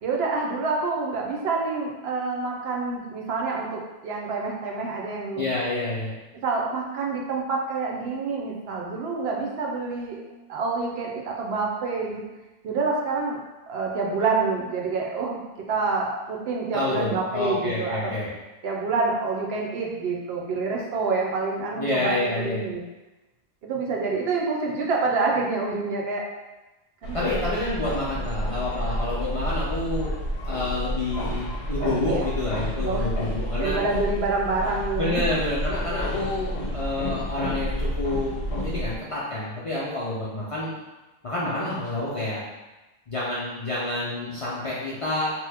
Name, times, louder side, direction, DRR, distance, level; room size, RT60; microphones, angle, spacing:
voice 1, 0.0-5.5 6.3-10.2 10.5-12.3 12.6-13.4 13.7-15.4 15.7-18.1 18.6-22.8 23.6-26.2 27.0-27.5 31.8-32.3 32.8-33.1 33.6-35.3, right 4 dB, 75° right, -1 dB, 0.8 m, -27 dB
voice 2, 5.3-6.1 16.7-18.3 21.8-22.6 27.1-33.8 35.0-38.3 38.6-40.7 41.2-42.4 43.1-45.3, left 2 dB, 45° left, -8 dB, 0.4 m, -28 dB
sound 1, 27.0-39.0, equal, 85° left, 0.9 m, -30 dB
2.9 x 2.1 x 3.3 m, 1.1 s
omnidirectional pair, 1.1 m